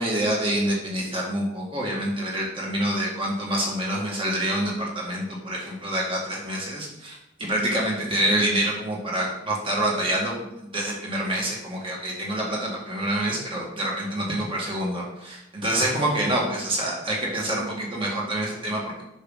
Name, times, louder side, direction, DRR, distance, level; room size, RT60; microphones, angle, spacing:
voice 1, 0.0-10.4 10.7-19.0, right 1 dB, 25° right, -3 dB, 2.0 m, -27 dB
8.1 x 6.2 x 4.0 m, 0.85 s
head